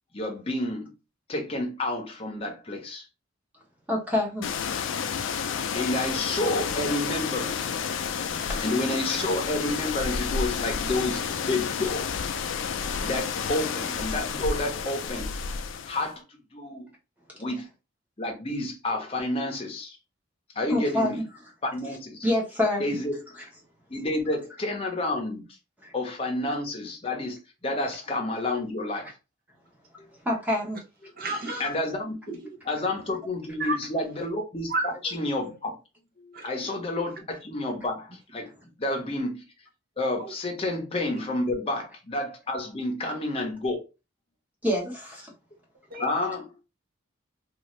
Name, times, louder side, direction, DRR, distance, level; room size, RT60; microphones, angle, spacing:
voice 1, 0.1-0.9 1.3-3.1 5.7-7.7 8.6-12.1 13.0-15.6 15.9-16.9 17.3-17.7 18.2-20.0 20.5-21.2 21.6-22.2 22.8-23.3 23.9-25.6 25.9-29.2 30.0-30.2 31.0-31.1 31.6-34.7 35.0-35.8 36.2-39.7 40.0-43.8 46.0-46.5, left 2 dB, 30° left, 0.7 m, -30 dB
voice 2, 3.9-4.5 20.7-21.1 22.2-23.0 25.8-25.9 30.2-30.8 44.6-45.3, left 1 dB, 10° right, 0.8 m, -26 dB
sound 1, 4.4-16.1, left 6 dB, 70° left, 0.4 m, -30 dB
voice 3, 31.2-31.8 33.6-33.8 34.7-35.2 36.3-36.4 40.2-40.3 45.9-46.1, right 2 dB, 45° right, 0.8 m, -31 dB
2.7 x 2.4 x 3.1 m
head